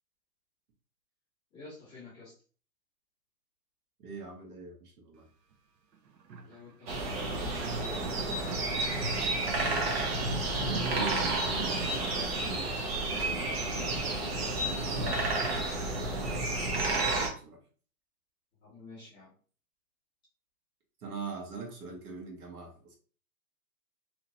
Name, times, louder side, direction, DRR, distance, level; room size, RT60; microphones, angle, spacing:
voice 1, 1.5-2.3 6.4-8.0 18.6-19.3, left 3 dB, 10° left, -9 dB, 0.7 m, -50 dB
voice 2, 4.0-5.3 10.5-14.1 14.5-15.7 16.3-17.6 21.0-23.0, right 4 dB, 60° right, 0 dB, 1.3 m, -43 dB
sound 1, 5.5-5.6 5.9-14.0, right 6 dB, 80° right, 0.8 m, -47 dB
sound 2, 6.9-17.3, right 2 dB, 40° right, 0.6 m, -31 dB
2.8 x 2.5 x 2.8 m, 0.40 s
hypercardioid pair, 145°, 49 cm